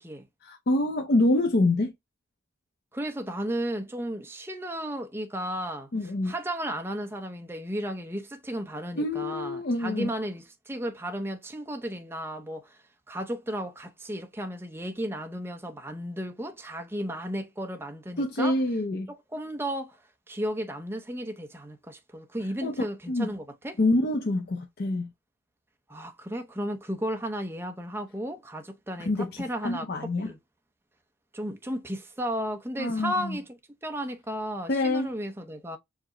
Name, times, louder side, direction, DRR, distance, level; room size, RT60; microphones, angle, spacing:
voice 1, 0.4-1.9 5.9-6.3 9.0-10.1 18.2-19.1 22.6-23.3 23.8-25.1 29.0-30.3 32.8-33.4 34.7-35.1, left 2 dB, 50° left, 0.5 m, -26 dB
voice 2, 2.9-5.9 6.2-12.8 13.1-18.6 19.1-20.0 20.3-23.8 25.9-30.4 31.3-33.5 33.8-35.8, equal, 10° right, 0.6 m, -34 dB
4.8 x 2.1 x 3.7 m
head